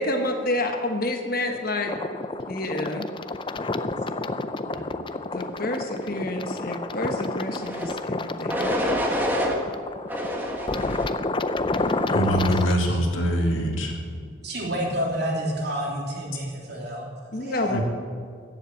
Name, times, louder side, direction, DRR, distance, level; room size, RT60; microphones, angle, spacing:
voice 1, 0.0-2.0 2.5-3.1 5.3-8.7 17.3-17.8, left 1 dB, 45° left, 4 dB, 1.2 m, -29 dB
sound 1, 1.9-12.7, left 2 dB, 25° left, 0.4 m, -30 dB
sound 2, 7.5-7.9 8.5-9.6 10.1-11.1 11.7-12.1, equal, 10° right, 1.4 m, -27 dB
voice 2, 12.1-14.0 17.6-17.8, equal, 75° left, 1 dB, 2.4 m, -23 dB
voice 3, 13.3-14.1 14.4-17.0 17.4-17.8, equal, 50° right, -2 dB, 3.3 m, -30 dB
14.5 x 7.8 x 9.1 m, 2.1 s
head